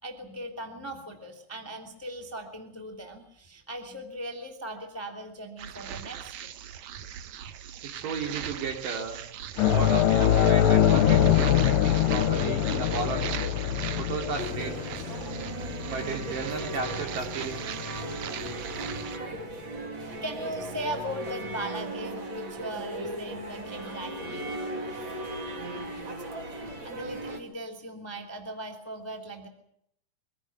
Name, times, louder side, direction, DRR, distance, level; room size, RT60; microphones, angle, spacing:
voice 1, 0.0-6.5 13.9-14.0 20.1-24.5 26.8-29.5, right 1 dB, 5° left, 3 dB, 2.1 m, -38 dB
sound 1, 5.6-19.2, right 10 dB, 90° right, 1.5 m, -39 dB
voice 2, 7.8-9.2 9.7-13.5 13.9-14.9 15.9-17.6, right 5 dB, 55° right, 4 dB, 4.4 m, -34 dB
sound 2, 9.6-18.5 18.9-19.0 21.1-21.2, left 10 dB, 65° left, 2.4 m, -24 dB
sound 3, 14.4-27.4, right 1 dB, 30° right, 3.0 m, -37 dB
23.5 x 16.5 x 9.3 m, 0.72 s
omnidirectional pair, 4.8 m